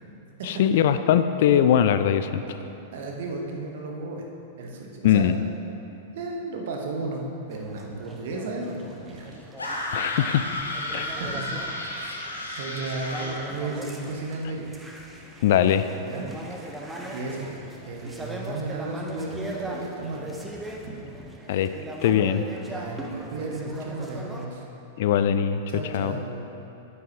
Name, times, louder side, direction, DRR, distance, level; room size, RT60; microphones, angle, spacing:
voice 1, 0.4-2.6 5.0-5.3 9.9-10.5 10.9-11.1 15.4-15.9 21.5-21.7 22.0-22.5 25.0-25.6 25.9-26.1, left 9 dB, 50° left, 11 dB, 0.3 m, -21 dB
voice 2, 2.9-4.2 4.6-5.2 6.1-9.3 11.0-14.7 16.0-17.6 17.9-20.5 20.8-21.1 22.6-24.6 25.7-26.4, right 2 dB, 55° right, 1 dB, 1.1 m, -34 dB
sound 1, 7.5-24.5, right 1 dB, 10° right, 0.7 m, -40 dB
sound 2, 9.6-13.5, left 1 dB, 80° left, 1.1 m, -32 dB
9.0 x 8.4 x 2.9 m, 2.9 s
figure-of-eight pair, 95°, 0 cm